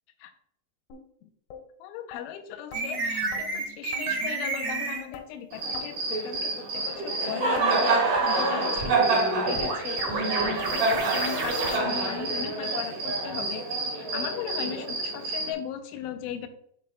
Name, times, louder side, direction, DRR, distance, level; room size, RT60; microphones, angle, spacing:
sound 1, 0.9-1.0 1.5-1.6 2.1-2.2 2.7-2.8 3.3-3.5 3.9-4.0 4.5-4.6 5.1-5.3 5.7-5.9 6.4-6.5 7.0-7.1 7.6-7.7 8.2-8.3 8.8-8.9 9.4-9.5 10.0-10.1 10.6-10.7 11.2-11.3 11.8-11.9 12.4-12.5 13.0-13.1 13.6-13.7, left 6 dB, 70° left, 2.3 m, -43 dB
voice 1, 1.8-16.5, left 10 dB, 90° left, 8 dB, 3.2 m, -37 dB
sound 2, 2.7-5.1 8.8-11.8, right 3 dB, 75° right, 1.2 m, -31 dB
Cricket, 5.5-15.5, right 3 dB, 50° right, 3.0 m, -27 dB
12.0 x 4.9 x 2.2 m, 0.69 s
omnidirectional pair, 5.4 m